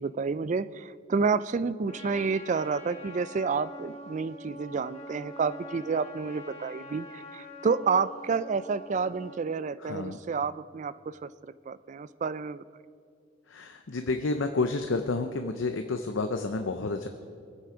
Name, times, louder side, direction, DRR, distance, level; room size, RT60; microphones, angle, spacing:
voice 1, 0.0-12.6, right 5 dB, 35° right, 16 dB, 0.3 m, -30 dB
Trumpet, 1.9-9.5, left 1 dB, 30° left, 1.9 m, -45 dB
voice 2, 9.8-10.2 13.5-17.1, left 3 dB, 65° left, 7 dB, 0.7 m, -30 dB
22.5 x 8.5 x 5.0 m, 2.2 s
head